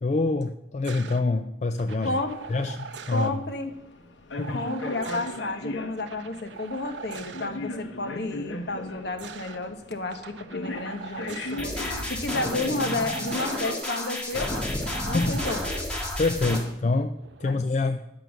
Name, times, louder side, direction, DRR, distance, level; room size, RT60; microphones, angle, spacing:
voice 1, 0.0-2.2 2.5-3.4 4.4-4.6 15.0-15.4 16.2-18.1, left 3 dB, 40° left, 7 dB, 0.4 m, -26 dB
sound 1, 0.8-1.2 1.8-3.3 4.4-5.4 5.9-7.5 8.8-9.6 10.1-11.6 12.7-13.7 14.3-15.8 17.1-17.5, right 6 dB, 80° right, 0.7 m, -42 dB
voice 2, 2.0-2.3 3.1-3.7 4.5-11.7 12.1-14.7 15.1-15.8 16.5-16.6 17.4-17.6, left 2 dB, 60° left, 6 dB, 1.1 m, -31 dB
sound 2, 2.2-13.8, left 2 dB, 85° left, 1.0 m, -39 dB
sound 3, 11.6-16.6, left 1 dB, 5° left, 1.9 m, -31 dB
10.5 x 6.8 x 6.2 m, 0.86 s
head